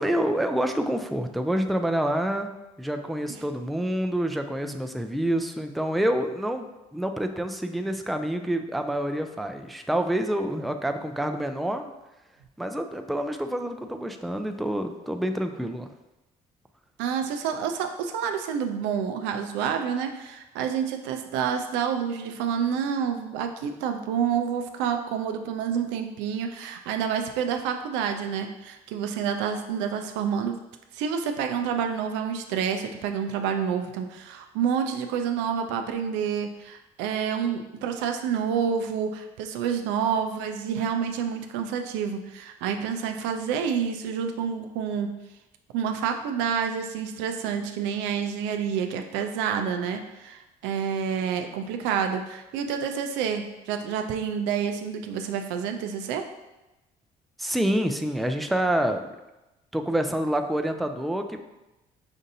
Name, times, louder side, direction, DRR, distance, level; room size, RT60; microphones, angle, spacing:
voice 1, 0.0-2.5 2.8-11.9 12.6-15.9 57.4-59.0 59.7-61.4, right 1 dB, ahead, 6 dB, 0.3 m, -27 dB
voice 2, 17.0-30.6 30.9-45.1 45.7-56.2, right 7 dB, 80° right, 6 dB, 0.4 m, -28 dB
5.1 x 2.7 x 2.6 m, 1.0 s
supercardioid pair, 60°, 18 cm